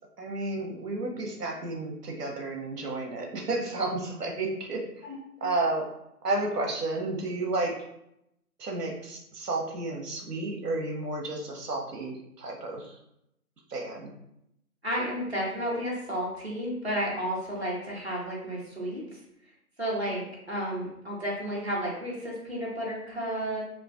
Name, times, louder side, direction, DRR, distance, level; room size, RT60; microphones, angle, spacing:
voice 1, 0.2-5.1 5.4-5.9 6.2-7.8 8.6-13.0 13.7-14.1, right 2 dB, 80° right, 1 dB, 0.8 m, -32 dB
voice 2, 14.8-19.0 19.8-23.6, equal, 45° right, -6 dB, 0.6 m, -32 dB
2.4 x 2.3 x 2.3 m, 0.81 s
figure-of-eight pair, 180°, 47 cm